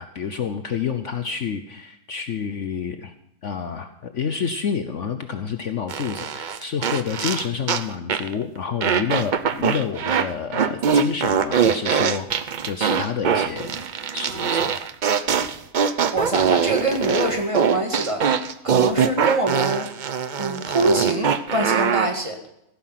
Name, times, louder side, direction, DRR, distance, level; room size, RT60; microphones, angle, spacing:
voice 1, 0.0-3.1 3.4-13.8 14.1-14.8, left 6 dB, 55° left, 8 dB, 1.0 m, -29 dB
sound 1, 5.9-7.8 8.1-8.3 8.8-10.3 10.5-22.1, right 7 dB, 60° right, 0.4 m, -22 dB
voice 2, 16.1-18.3 18.6-19.9 20.4-22.4, right 2 dB, 20° right, 3 dB, 1.9 m, -24 dB
16.5 x 10.0 x 5.8 m, 0.80 s
omnidirectional pair, 1.7 m